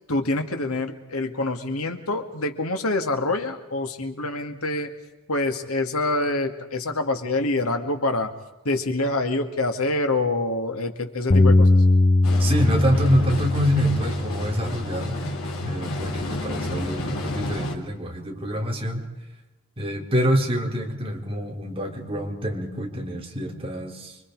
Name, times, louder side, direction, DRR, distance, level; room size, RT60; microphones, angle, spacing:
voice 1, 0.1-4.9 5.3-8.3 8.6-11.8, left 2 dB, 90° left, 6 dB, 2.4 m, -26 dB
Bass guitar, 11.3-17.5, left 2 dB, 35° left, 0.7 m, -22 dB
sound 1, 12.2-17.8, left 1 dB, 75° left, 3.5 m, -32 dB
voice 2, 12.4-15.2 15.6-19.0 19.8-24.2, equal, 25° right, 0 dB, 4.4 m, -26 dB
29.5 x 24.5 x 4.9 m, 1.1 s
head